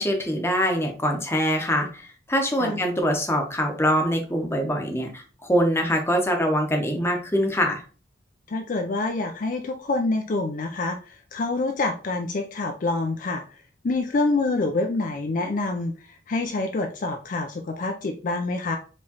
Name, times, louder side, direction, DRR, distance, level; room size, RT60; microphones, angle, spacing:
voice 1, 0.0-7.8, equal, 15° left, 2 dB, 0.8 m, -24 dB
voice 2, 8.5-13.4 13.8-15.9 16.3-18.8, left 3 dB, 45° left, 4 dB, 0.4 m, -26 dB
4.6 x 3.1 x 2.8 m, 0.38 s
head